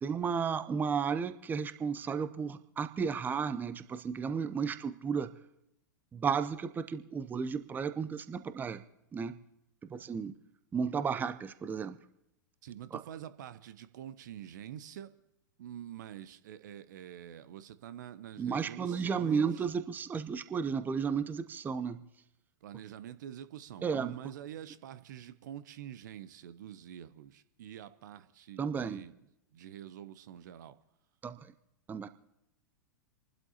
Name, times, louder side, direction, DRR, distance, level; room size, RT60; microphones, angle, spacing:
voice 1, 0.0-5.3 6.1-8.8 9.1-9.4 9.9-10.3 10.7-12.0 12.9-13.0 18.4-22.0 23.8-24.2 28.6-29.0 31.2-31.5 31.9-32.1, right 6 dB, 15° right, 11 dB, 0.6 m, -33 dB
voice 2, 12.6-15.1 15.6-19.5 22.6-29.2 29.5-30.8, right 10 dB, 60° right, 14 dB, 0.7 m, -46 dB
29.0 x 12.0 x 2.9 m, 0.84 s
figure-of-eight pair, 100°, 11 cm